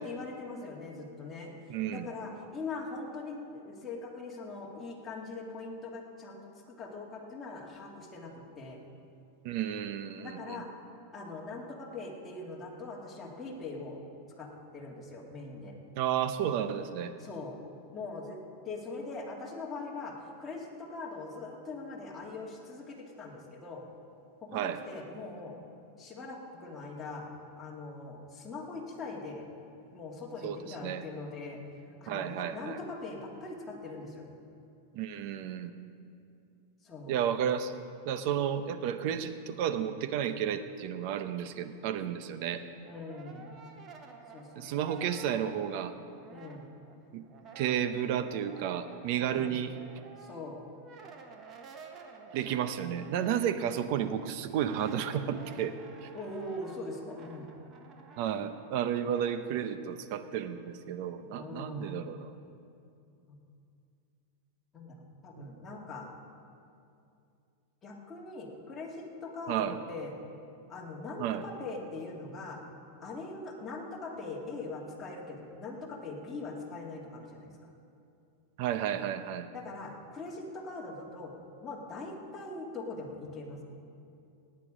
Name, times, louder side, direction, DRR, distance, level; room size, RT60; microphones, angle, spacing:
voice 1, 0.0-6.4 6.8-8.8 10.2-10.7 11.1-14.0 14.4-15.7 17.2-17.6 17.9-23.8 24.4-25.6 26.0-27.3 27.6-29.5 29.9-31.6 32.0-34.3 36.8-37.2 42.8-43.6 44.3-44.9 46.3-46.7 49.2-49.6 50.2-50.6 56.1-57.5 61.4-62.1 63.3-63.4 64.7-66.1 67.8-70.1 70.7-72.6 73.0-77.5 79.5-81.3 81.6-83.6, left 3 dB, 20° left, -2 dB, 2.2 m, -42 dB
voice 2, 1.7-2.1 9.4-10.6 16.0-17.1 24.5-24.8 30.4-31.0 32.1-32.8 34.9-35.7 37.1-37.7 38.1-42.6 44.6-46.0 47.1-47.2 47.5-49.7 52.3-55.7 56.0-56.1 58.2-62.3 65.4-65.5 69.5-69.8 71.2-71.4 78.6-79.5, right 9 dB, 55° right, 11 dB, 0.8 m, -32 dB
Brass instrument, 42.6-47.0 47.3-59.4, right 5 dB, 30° right, 1.3 m, -51 dB
18.0 x 9.1 x 5.1 m, 2.6 s
supercardioid pair, 135°, 0 cm